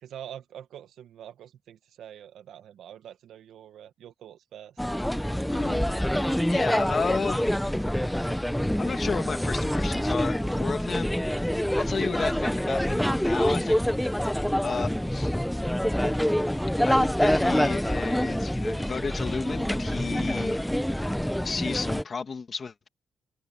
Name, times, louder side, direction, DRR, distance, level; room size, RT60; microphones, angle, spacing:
voice 1, 0.0-4.8, right 10 dB, 80° right, 1.5 m, -45 dB
sound 1, 4.8-22.0, equal, 5° left, 1.0 m, -26 dB
voice 2, 5.5-5.9 6.5-7.9 8.7-11.1 11.7-13.8 14.6-15.3 16.8-20.6 21.4-22.9, left 5 dB, 35° left, 2.6 m, -32 dB
open air
cardioid pair, 140°, 0 cm